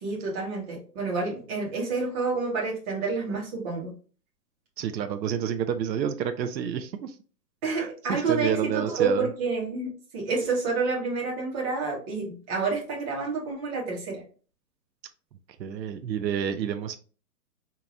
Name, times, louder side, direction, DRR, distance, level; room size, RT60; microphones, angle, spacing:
voice 1, 0.0-3.9 7.6-14.2, right 4 dB, 25° right, -3 dB, 1.2 m, -29 dB
voice 2, 4.8-7.1 7.6-9.3 15.6-17.0, right 8 dB, 85° right, 9 dB, 0.6 m, -29 dB
4.7 x 2.8 x 2.5 m, 0.38 s
hypercardioid pair, 155°, 50 cm